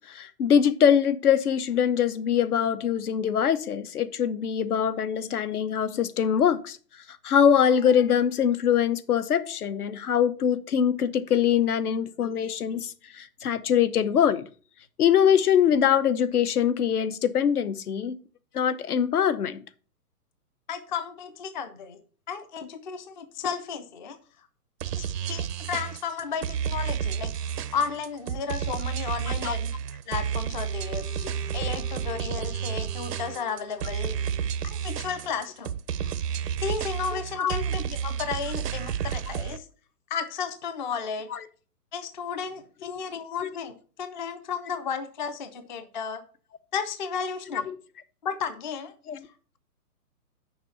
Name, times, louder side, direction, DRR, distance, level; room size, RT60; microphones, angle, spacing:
voice 1, 0.1-6.8 7.2-14.5 15.0-18.2 18.5-19.6 29.3-29.5 31.2-31.3 37.1-37.6 41.3-41.5 43.4-43.5 47.5-47.7 49.1-49.3, left 8 dB, 70° left, 1.0 m, -23 dB
voice 2, 20.7-22.0 22.3-24.2 25.0-29.7 30.1-34.2 34.6-36.1 36.6-39.7 40.1-41.3 41.9-43.7 44.0-46.2 46.7-47.7 48.2-48.9, left 6 dB, 30° left, 0.5 m, -33 dB
sound 1, 24.8-39.6, right 8 dB, 85° right, 0.7 m, -31 dB
Wind instrument woodwind instrument, 30.6-34.6, left 7 dB, 85° left, 4.5 m, -47 dB
6.7 x 5.0 x 6.8 m
hypercardioid pair, 155°, 47 cm